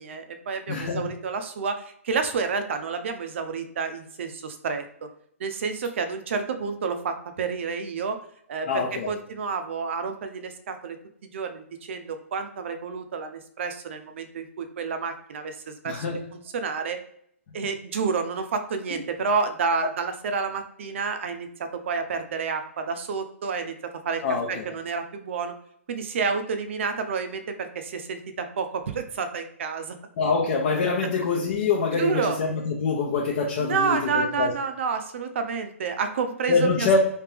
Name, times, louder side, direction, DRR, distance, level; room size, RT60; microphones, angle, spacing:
voice 1, 0.0-5.1 5.4-8.2 8.5-11.0 11.2-16.1 16.3-17.0 17.5-25.5 25.9-30.0 31.9-32.4 33.6-36.9, right 5 dB, 55° right, 7 dB, 0.6 m, -29 dB
voice 2, 0.7-1.1 8.7-9.1 15.8-16.2 24.2-24.7 30.2-34.5 36.5-37.0, left 4 dB, 45° left, -3 dB, 0.8 m, -25 dB
3.4 x 2.8 x 3.4 m, 0.68 s
hypercardioid pair, 140°, 8 cm